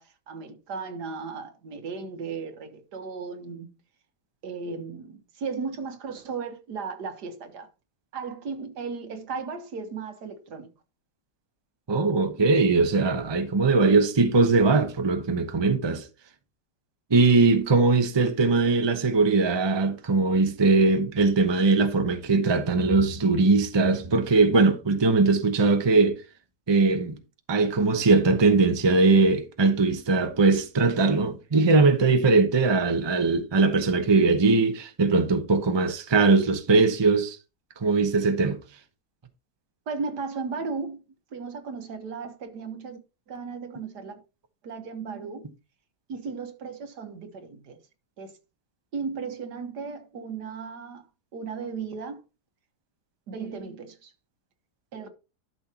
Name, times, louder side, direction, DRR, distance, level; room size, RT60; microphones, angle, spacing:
voice 1, 0.0-3.7 4.4-7.7 8.1-10.7 39.9-41.0 41.3-43.0 43.3-44.2 44.6-45.5 46.1-47.8 48.2-48.4 48.9-51.1 51.3-52.2 53.3-54.1 54.9-55.1, right 5 dB, 75° right, 1.8 m, -35 dB
voice 2, 11.9-16.1 17.1-26.2 26.7-27.2 27.5-37.4 37.8-38.6, right 3 dB, 20° right, 0.8 m, -21 dB
12.0 x 6.1 x 2.9 m
omnidirectional pair, 1.8 m